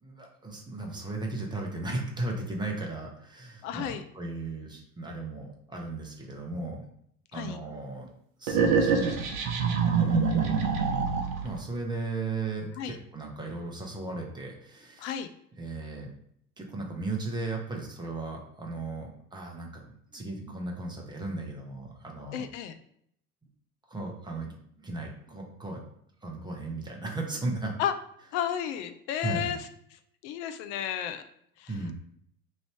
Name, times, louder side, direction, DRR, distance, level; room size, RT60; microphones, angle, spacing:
voice 1, 0.0-6.8 7.3-8.1 8.4-9.3 9.9-10.8 11.4-15.2 15.6-16.1 16.6-19.8 20.1-22.4 23.9-25.8 26.2-27.7 29.2-29.6 31.7-31.9, right 2 dB, 10° right, 0 dB, 0.8 m, -36 dB
voice 2, 3.6-4.0 7.3-7.6 12.8-13.0 15.0-15.3 22.3-22.7 27.8-27.9 28.3-29.6 30.2-31.2 31.6-31.7, left 9 dB, 50° left, 9 dB, 0.5 m, -32 dB
sound 1, 8.5-11.6, right 5 dB, 60° right, 0.8 m, -25 dB
3.2 x 2.6 x 4.4 m, 0.69 s
figure-of-eight pair, 75°, 47 cm